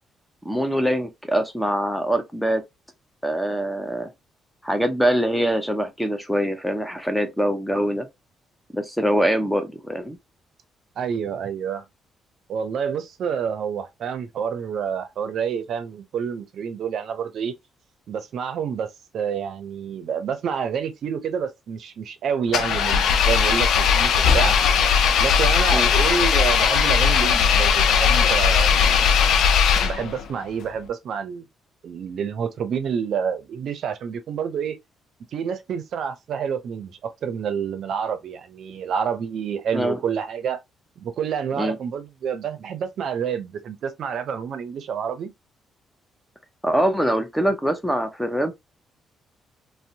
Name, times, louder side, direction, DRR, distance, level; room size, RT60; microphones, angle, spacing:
voice 1, 0.4-2.6 3.2-4.1 4.6-8.1 8.7-10.2 25.7-25.9 39.7-40.0 41.6-41.8 46.6-48.5, equal, 5° left, 0.6 m, -23 dB
voice 2, 11.0-11.9 12.5-17.5 18.1-24.6 25.2-28.9 29.8-31.5 31.8-34.8 35.3-40.6 41.0-45.3, right 7 dB, 65° right, 0.5 m, -28 dB
Engine, 22.5-30.3, left 7 dB, 75° left, 0.4 m, -18 dB
2.6 x 2.1 x 2.7 m
cardioid pair, 90°, 0 cm